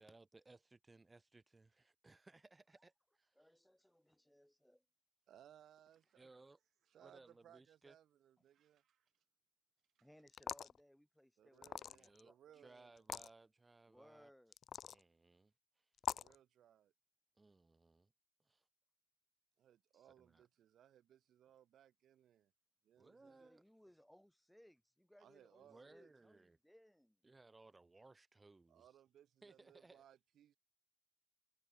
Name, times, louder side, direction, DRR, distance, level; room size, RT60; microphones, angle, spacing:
voice 1, 0.0-3.4 6.2-6.6 7.0-8.0 11.9-14.3 14.8-15.9 17.4-18.1 18.4-18.7 19.9-20.4 23.0-23.6 25.6-26.6 27.2-28.9 29.4-30.0, right 3 dB, 20° right, 3.1 m, -64 dB
voice 2, 3.4-4.8 10.0-12.8 13.9-14.5 23.2-27.2, equal, 5° left, 1.3 m, -67 dB
voice 3, 5.3-6.3 6.9-9.1 10.0-10.1 11.4-13.0 16.1-16.9 19.6-22.5 22.8-23.5 25.2-26.1 28.7-30.6, right 10 dB, 70° right, 1.2 m, -66 dB
sound 1, 10.3-10.8 11.6-12.2 13.0-13.3 14.5-15.0 16.0-16.4, left 8 dB, 60° left, 0.3 m, -43 dB
cardioid pair, 90°, 0 cm